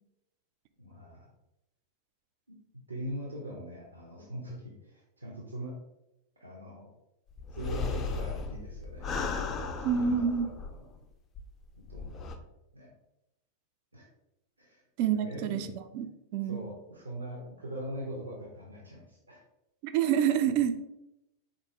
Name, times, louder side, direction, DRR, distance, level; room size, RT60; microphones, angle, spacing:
voice 1, 0.8-1.3 2.5-2.6 2.9-5.8 6.4-6.9 7.5-9.2 9.8-10.8 11.9-12.3 12.7-12.9 13.9-14.1 14.6-14.8 15.1-15.7 16.4-19.4, right 1 dB, 80° right, -3 dB, 0.6 m, -41 dB
sound 1, 7.4-11.0 11.3-11.4 11.9-12.3, left 4 dB, 25° left, 0.4 m, -35 dB
voice 2, 9.8-10.5 15.0-15.7 15.9-16.1 16.3-16.7 19.8-20.8, right 8 dB, 45° right, 9 dB, 0.3 m, -27 dB
3.9 x 2.6 x 2.9 m, 0.89 s
figure-of-eight pair, 90°, 0 cm